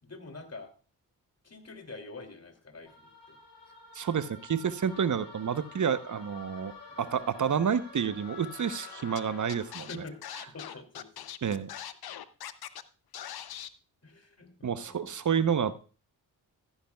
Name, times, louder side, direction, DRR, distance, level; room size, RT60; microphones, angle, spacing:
voice 1, 0.0-0.7 1.4-3.4 6.9-7.0 9.9-10.2 10.5-11.3 14.0-15.1, left 3 dB, 40° left, 5 dB, 2.8 m, -46 dB
sound 1, 2.9-10.1, left 3 dB, 80° left, 4.6 m, -49 dB
voice 2, 3.9-6.7 7.0-10.0 11.4-11.7 14.6-15.8, right 7 dB, 45° right, 13 dB, 0.9 m, -29 dB
Scratching (performance technique), 9.2-9.3 9.5-12.8 13.1-13.7, left 11 dB, 65° left, 0.7 m, -41 dB
14.0 x 10.0 x 2.3 m, 0.37 s
supercardioid pair, 45°, 41 cm